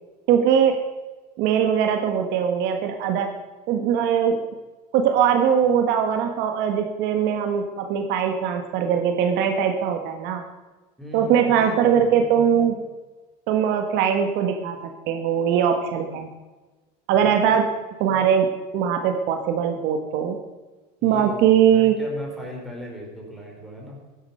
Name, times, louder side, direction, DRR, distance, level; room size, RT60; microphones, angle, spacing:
voice 1, 0.3-0.8 1.4-3.3 3.7-4.4 4.9-10.4 11.1-12.8 13.5-14.8 15.1-16.3 17.1-17.6 18.0-18.5 18.7-20.4 21.0-22.0, right 8 dB, 55° right, 5 dB, 1.6 m, -21 dB
voice 2, 11.0-12.1 13.5-13.6 16.1-16.3 17.2-17.4 21.0-24.0, left 1 dB, ahead, -1 dB, 4.1 m, -38 dB
15.5 x 11.0 x 5.6 m, 1.2 s
cardioid pair, 155°, 21 cm